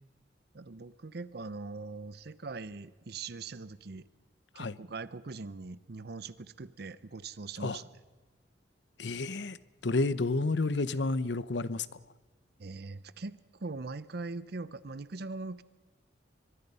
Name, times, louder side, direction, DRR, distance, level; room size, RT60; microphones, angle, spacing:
voice 1, 0.5-4.0 4.5-7.9 12.6-15.6, right 3 dB, 60° right, 17 dB, 0.7 m, -41 dB
voice 2, 9.0-9.6 9.8-11.9, left 3 dB, 75° left, 18 dB, 0.8 m, -30 dB
24.5 x 22.5 x 5.5 m, 1.3 s
head